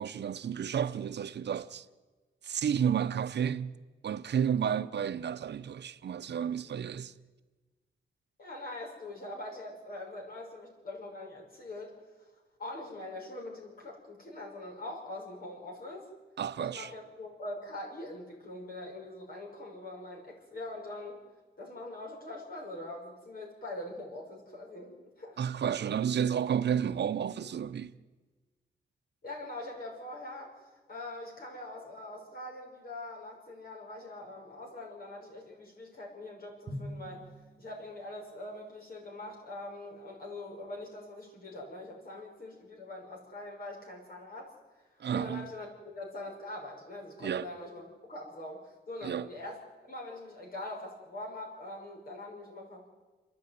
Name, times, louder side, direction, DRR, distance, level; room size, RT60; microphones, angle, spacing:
voice 1, 0.0-1.9 2.4-3.7 4.0-7.1 16.4-16.9 25.4-27.9 45.0-45.5 47.2-47.5 49.0-49.3, right 8 dB, 65° right, 0.7 m, -31 dB
voice 2, 8.4-12.3 12.6-16.1 16.6-21.2 21.6-25.4 29.2-30.5 30.9-37.2 37.6-52.9, left 2 dB, 50° left, 6.4 m, -43 dB
Drum, 36.7-38.4, equal, 35° right, 1.8 m, -44 dB
30.0 x 10.5 x 9.4 m
wide cardioid pair, 150°, 19 cm